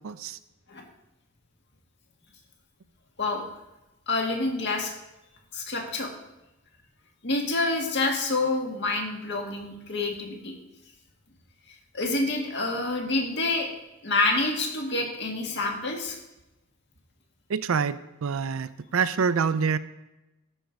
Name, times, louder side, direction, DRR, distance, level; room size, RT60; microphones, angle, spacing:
voice 1, 0.0-0.4 17.5-19.8, right 5 dB, 70° right, 15 dB, 0.4 m, -26 dB
voice 2, 4.1-4.9 5.5-6.1 7.2-10.5 11.9-13.7 14.0-16.2, left 2 dB, 50° left, 1 dB, 1.8 m, -27 dB
13.5 x 5.3 x 4.6 m, 0.96 s
head